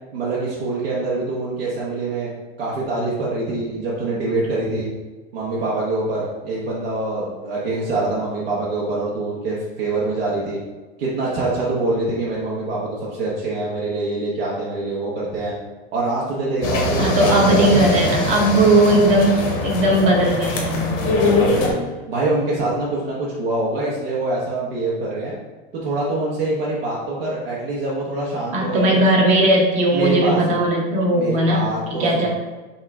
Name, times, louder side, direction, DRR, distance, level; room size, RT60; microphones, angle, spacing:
voice 1, 0.1-2.3 2.6-4.9 5.3-10.6 11.0-15.5 15.9-18.1 21.0-21.8 22.1-25.3 25.8-29.0 29.9-30.6 31.1-32.3, right 2 dB, 75° right, -6 dB, 1.1 m, -24 dB
sound 1, 16.6-21.7, left 2 dB, 30° left, 0.7 m, -22 dB
voice 2, 17.0-20.9 28.5-32.3, right 1 dB, 20° right, -1 dB, 0.7 m, -18 dB
5.5 x 2.5 x 3.4 m, 1.3 s
supercardioid pair, 170°, 30 cm